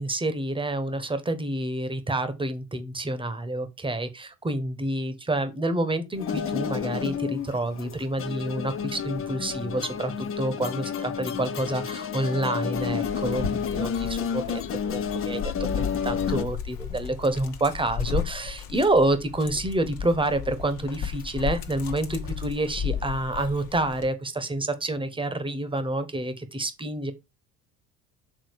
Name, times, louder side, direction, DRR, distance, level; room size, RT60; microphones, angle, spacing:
voice 1, 0.0-27.1, right 2 dB, 15° right, 1.2 m, -28 dB
sound 1, 6.2-16.4, left 7 dB, 35° left, 0.8 m, -30 dB
Dog, 12.7-24.1, left 7 dB, 60° left, 1.4 m, -34 dB
6.8 x 3.7 x 4.8 m
hypercardioid pair, 75°, 39 cm